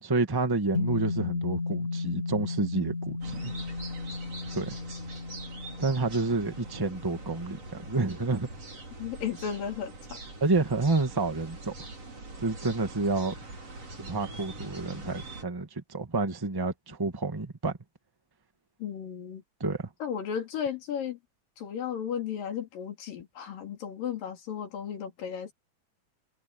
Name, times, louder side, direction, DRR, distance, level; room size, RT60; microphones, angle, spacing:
voice 1, 0.0-3.5 4.5-4.8 5.8-7.6 7.8-8.5 10.4-11.7 12.4-13.4 14.0-17.8 19.6-19.9, right 3 dB, 15° right, 0.9 m, -29 dB
sound 1, 0.7-9.2, left 3 dB, 55° left, 7.1 m, -35 dB
sound 2, 3.2-15.4, right 2 dB, 45° right, 6.4 m, -43 dB
voice 2, 9.0-10.2 18.8-19.4 20.0-21.2 21.6-25.5, left 8 dB, 70° left, 4.6 m, -34 dB
omnidirectional pair, 4.1 m